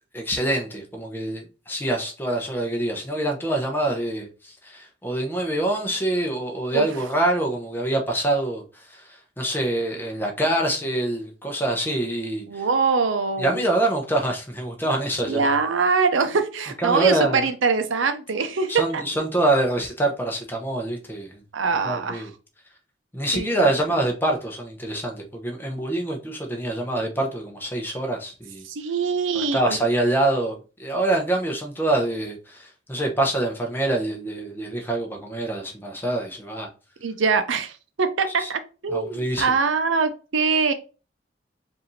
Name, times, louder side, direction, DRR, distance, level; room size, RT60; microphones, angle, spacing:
voice 1, 0.1-12.6 13.4-15.5 16.8-17.5 18.7-21.4 21.8-22.3 23.1-28.6 29.3-36.7 38.4-38.5 38.9-39.5, right 1 dB, 10° left, 0.8 m, -25 dB
voice 2, 12.5-13.7 15.3-19.0 21.5-22.3 23.3-23.7 28.6-29.8 37.0-40.7, right 4 dB, 85° right, 0.6 m, -23 dB
4.9 x 2.7 x 3.1 m
head